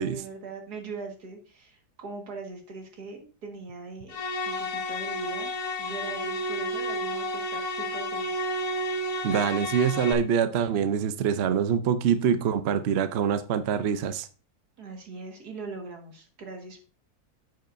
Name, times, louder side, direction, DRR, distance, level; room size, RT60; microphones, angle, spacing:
voice 1, 0.0-4.2 4.5-5.5 5.8-8.5 14.8-16.8, right 4 dB, 80° right, 2 dB, 2.2 m, -40 dB
sound 1, 4.1-10.1, left 1 dB, 75° left, 1.5 m, -31 dB
voice 2, 9.2-14.3, right 8 dB, 60° right, 11 dB, 0.7 m, -25 dB
9.2 x 7.8 x 2.6 m, 0.35 s
omnidirectional pair, 1.7 m